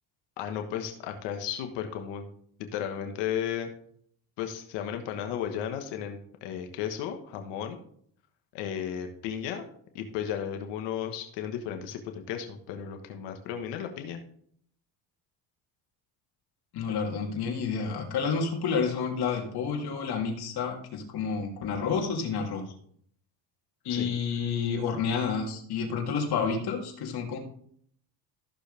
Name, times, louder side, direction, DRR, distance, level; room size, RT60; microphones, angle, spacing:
voice 1, 0.4-2.3 2.7-3.7 4.4-7.8 8.5-9.7 9.9-14.2 23.9-24.1, left 9 dB, 85° left, 6 dB, 1.5 m, -34 dB
voice 2, 16.7-22.6 23.8-27.4, left 5 dB, 65° left, 0 dB, 3.1 m, -30 dB
14.5 x 6.5 x 3.5 m, 0.63 s
cardioid pair, 95°, 41 cm